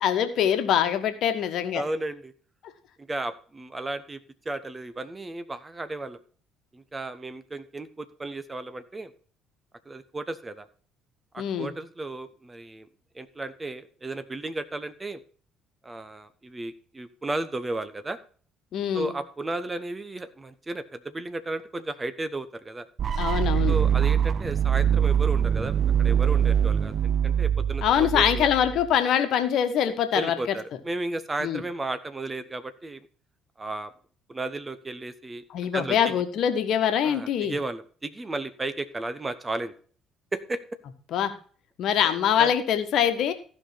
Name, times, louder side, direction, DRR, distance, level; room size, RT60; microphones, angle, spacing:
voice 1, 0.0-1.8 11.4-11.7 18.7-19.1 23.2-23.7 27.8-30.3 31.4-31.6 35.5-37.5 41.1-41.3 41.8-43.3, left 9 dB, 55° left, 8 dB, 1.4 m, -24 dB
voice 2, 1.7-2.3 3.0-4.2 4.4-6.2 6.7-9.1 9.8-10.7 11.3-12.9 13.1-15.2 15.8-18.2 18.9-22.9 23.7-28.5 30.1-33.0 33.6-33.9 34.3-35.4 35.7-36.1 37.0-39.7 40.3-40.6 42.0-42.5, right 2 dB, 20° right, 12 dB, 1.2 m, -34 dB
sound 1, 23.0-28.9, right 8 dB, 40° right, 0.6 m, -23 dB
15.0 x 5.5 x 5.9 m, 0.43 s
figure-of-eight pair, 50°, 0 cm